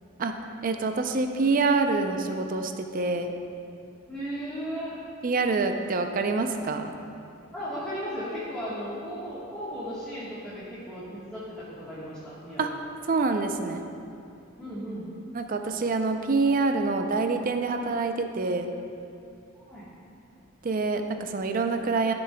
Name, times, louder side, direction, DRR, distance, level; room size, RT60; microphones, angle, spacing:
voice 1, 0.6-3.3 5.2-6.9 12.6-12.7 13.1-13.8 15.3-18.7 20.6-22.1, right 3 dB, 40° right, 6 dB, 0.4 m, -26 dB
voice 2, 4.1-5.0 7.5-12.6 14.6-15.1 19.7-19.9, equal, 5° left, -11 dB, 1.3 m, -36 dB
13.0 x 6.9 x 2.2 m, 2.6 s
head